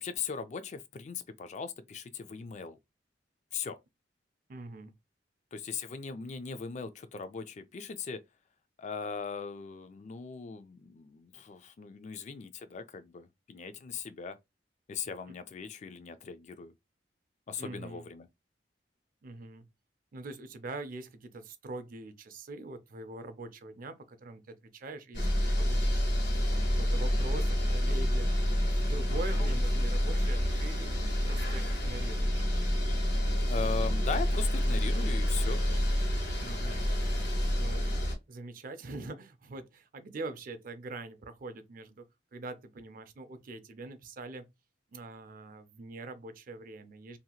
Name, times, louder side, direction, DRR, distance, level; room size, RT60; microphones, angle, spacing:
voice 1, 0.0-2.8 3.5-3.8 5.5-8.2 8.8-14.4 14.9-16.7 17.5-18.3 29.5-29.6 33.5-35.6, left 5 dB, 40° left, 0.3 m, -39 dB
voice 2, 4.5-4.9 17.6-18.0 19.2-19.6 20.1-25.3 25.6-26.0 26.5-28.3 28.6-30.9 31.2-32.6 36.4-36.9 37.6-42.0 42.3-44.5 44.9-47.2, right 2 dB, 50° right, 0.4 m, -43 dB
sound 1, 25.1-38.1, equal, 75° left, 1.4 m, -28 dB
2.8 x 2.8 x 2.3 m
head